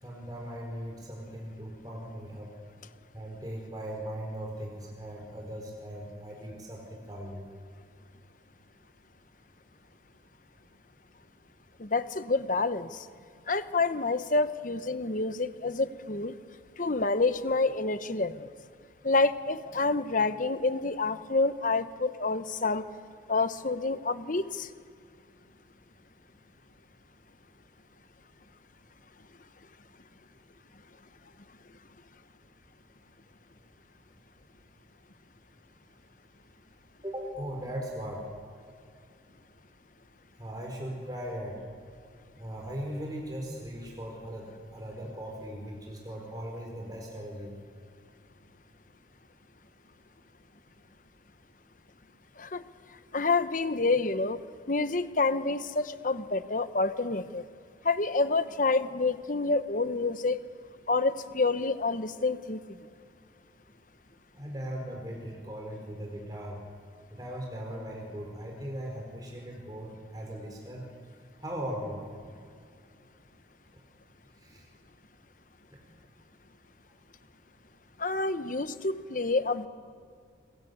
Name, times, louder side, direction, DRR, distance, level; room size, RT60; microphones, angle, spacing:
voice 1, 0.0-2.5 3.1-7.4 37.0-38.3 40.4-41.6 42.3-47.5 64.3-66.6 67.1-70.8 71.4-72.0 74.4-74.7 75.7-75.9, equal, 20° right, -1 dB, 4.5 m, -39 dB
voice 2, 11.8-13.1 13.5-16.4 16.8-18.5 19.0-22.8 23.3-24.7 52.4-52.6 53.1-54.4 54.7-57.4 57.8-60.4 60.9-62.6 78.0-79.7, left 3 dB, 45° left, 12 dB, 1.1 m, -28 dB
27.5 x 22.0 x 8.2 m, 2.3 s
head